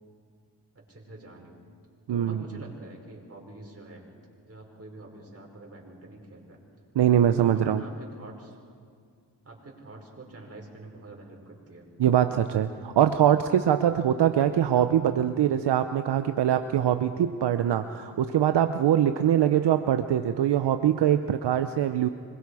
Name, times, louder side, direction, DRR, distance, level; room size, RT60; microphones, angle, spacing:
voice 1, 0.7-1.5 2.1-4.1 4.5-6.6 7.3-8.6 9.4-11.9, right 2 dB, 35° right, 0 dB, 5.4 m, -46 dB
voice 2, 2.1-2.4 7.0-7.8 12.0-22.1, right 10 dB, 75° right, 9 dB, 0.8 m, -23 dB
26.0 x 21.0 x 4.9 m, 2.1 s
cardioid pair, 70°, 42 cm